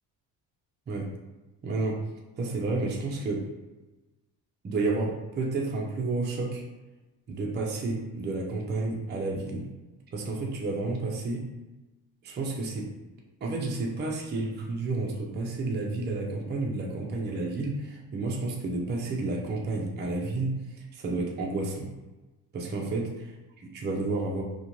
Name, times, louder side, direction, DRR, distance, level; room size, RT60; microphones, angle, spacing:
voice 1, 1.6-2.0 2.4-3.5 4.6-6.6 7.3-9.7 10.1-11.4 12.2-12.9 13.4-21.9 22.5-23.0 23.6-24.4, right 3 dB, 25° right, -1 dB, 0.4 m, -31 dB
2.4 x 2.2 x 2.9 m, 1.1 s
cardioid pair, 100°, 45 cm